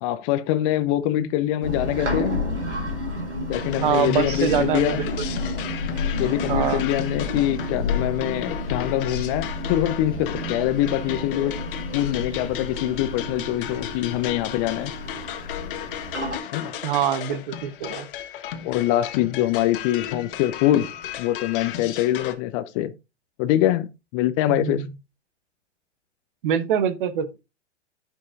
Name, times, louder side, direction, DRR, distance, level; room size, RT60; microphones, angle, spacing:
voice 1, 0.0-2.4 3.5-5.0 6.2-11.5 11.9-14.9 16.5-16.7 18.6-20.9 21.2-22.9 23.4-24.8, left 13 dB, 30° left, 0.5 m, -24 dB
sound 1, 1.6-16.4, left 2 dB, 80° right, 3.0 m, -30 dB
sound 2, 3.5-22.3, left 9 dB, 50° left, 1.3 m, -35 dB
voice 2, 3.8-5.3 6.5-6.8 16.8-18.1 24.5-24.9 26.4-27.4, right 9 dB, 50° right, 1.0 m, -24 dB
14.5 x 5.4 x 2.5 m
figure-of-eight pair, 100°, 35 cm